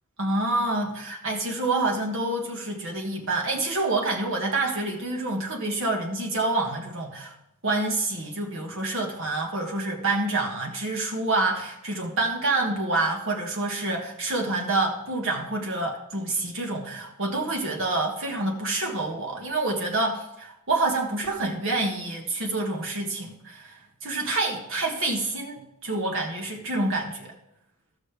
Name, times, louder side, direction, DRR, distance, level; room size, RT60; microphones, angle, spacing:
voice 1, 0.2-7.3 7.6-27.3, right 2 dB, 60° right, 0 dB, 1.6 m, -27 dB
15.0 x 6.5 x 3.4 m, 0.84 s
head